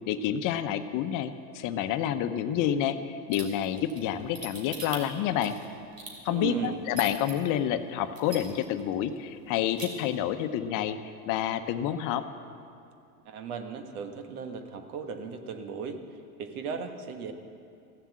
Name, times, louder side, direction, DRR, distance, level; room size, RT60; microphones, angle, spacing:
voice 1, 0.1-5.6 6.2-11.0 11.3-12.3, left 10 dB, 40° left, 10 dB, 0.9 m, -29 dB
sound 1, 3.3-7.3 7.8-7.9 8.2-8.8 9.1-9.2 9.5-9.9, right 3 dB, 90° right, 3.1 m, -41 dB
voice 2, 6.3-6.9 13.2-16.0 16.4-17.3, right 6 dB, 70° right, 6 dB, 1.5 m, -36 dB
15.5 x 7.4 x 7.4 m, 2.4 s
hypercardioid pair, 105°, 47 cm